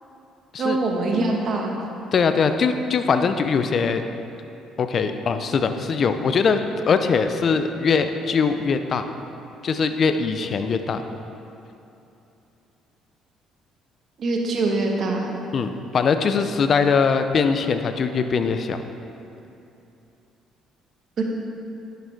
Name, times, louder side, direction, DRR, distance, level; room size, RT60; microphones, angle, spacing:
voice 1, 0.6-1.8 14.2-15.2 21.2-21.3, right 3 dB, 55° right, 0 dB, 1.4 m, -23 dB
voice 2, 2.1-4.0 4.8-6.6 6.9-9.1 9.6-11.0 15.5-18.8, left 5 dB, 50° left, 8 dB, 0.5 m, -21 dB
10.5 x 6.6 x 3.5 m, 2.8 s
hypercardioid pair, 55°, 0 cm